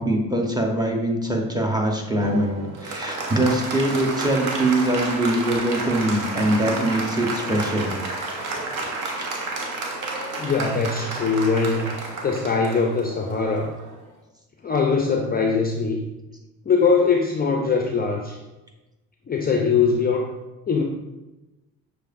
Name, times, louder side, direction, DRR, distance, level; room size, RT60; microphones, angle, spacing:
voice 1, 0.0-2.5 2.8-8.0 9.2-9.3, right 1 dB, 10° right, 1 dB, 0.8 m, -23 dB
Applause, 2.2-14.1, right 2 dB, 55° right, 0.9 m, -31 dB
voice 2, 10.4-11.9 12.2-13.7 14.6-16.0 16.7-18.4 19.3-20.3 20.7-20.8, left 5 dB, 25° left, 2 dB, 0.4 m, -21 dB
6.3 x 2.6 x 2.5 m, 1.1 s
supercardioid pair, 65°, 36 cm